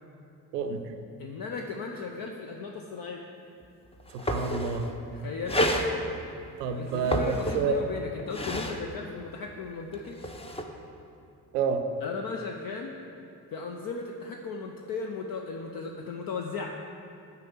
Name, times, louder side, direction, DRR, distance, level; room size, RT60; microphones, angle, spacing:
voice 1, 0.5-0.8 4.1-4.9 6.6-7.8 11.5-11.8, right 5 dB, 80° right, 7 dB, 0.6 m, -29 dB
voice 2, 1.2-3.3 5.1-5.6 6.7-10.2 12.0-12.9 13.5-16.7, left 4 dB, 45° left, 2 dB, 0.7 m, -36 dB
sound 1, 3.6-3.7 4.0-4.9 5.5-5.9 6.9-7.8 8.2-8.8 9.9-10.6, equal, 15° left, 0.7 m, -29 dB
6.7 x 4.7 x 6.9 m, 2.6 s
figure-of-eight pair, 40°, 46 cm